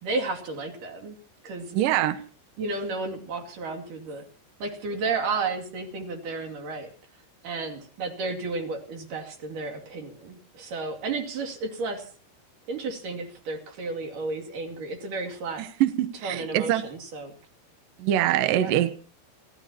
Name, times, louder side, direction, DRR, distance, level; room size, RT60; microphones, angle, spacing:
voice 1, 0.0-1.2 1.4-1.8 2.6-4.2 4.6-6.9 7.4-12.1 12.7-15.6 16.2-17.3 18.5-18.7, right 3 dB, 50° right, 3.6 m, -32 dB
voice 2, 1.7-2.2 15.6-16.8 18.0-19.0, right 12 dB, 90° right, 1.9 m, -24 dB
28.5 x 15.5 x 2.9 m
omnidirectional pair, 5.7 m